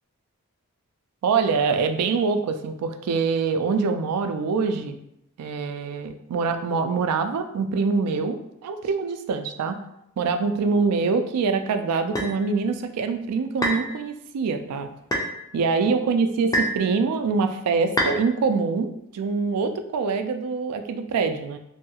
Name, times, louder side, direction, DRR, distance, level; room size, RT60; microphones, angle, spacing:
voice 1, 1.2-5.0 5.4-9.8 10.2-14.9 15.5-21.6, right 4 dB, 90° right, 7 dB, 0.3 m, -24 dB
sound 1, 12.2-12.3 13.6-13.9 15.1-15.3 16.5-16.8 18.0-18.2, equal, 15° left, 0.3 m, -24 dB
2.7 x 2.3 x 2.7 m, 0.81 s
head